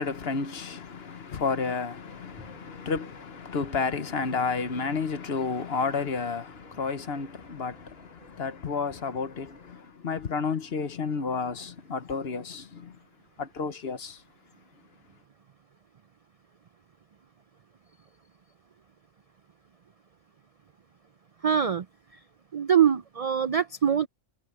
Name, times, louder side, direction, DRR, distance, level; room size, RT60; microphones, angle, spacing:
voice 1, 0.0-13.0 13.4-14.2, left 5 dB, 55° left, 1.2 m, -31 dB
sound 1, 2.1-9.7, equal, 5° right, 7.6 m, -56 dB
voice 2, 21.4-21.9 22.5-24.1, right 8 dB, 70° right, 0.3 m, -23 dB
omnidirectional pair, 1.3 m